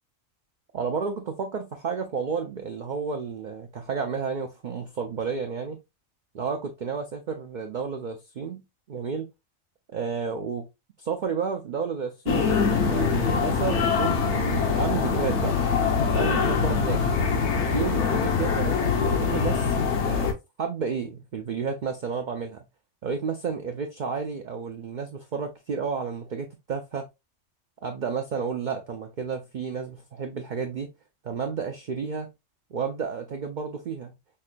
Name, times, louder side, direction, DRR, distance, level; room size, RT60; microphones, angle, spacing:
voice 1, 0.7-5.8 6.3-8.6 8.9-9.3 9.9-10.7 11.0-15.6 16.1-17.0 17.7-19.8 20.0-20.3 20.6-22.6 23.0-27.0 27.8-30.9 31.2-32.3 32.7-34.1, right 5 dB, 90° right, 0.4 m, -31 dB
sound 1, 12.3-20.3, left 5 dB, 65° left, 0.9 m, -24 dB
5.4 x 2.2 x 2.4 m
omnidirectional pair, 1.4 m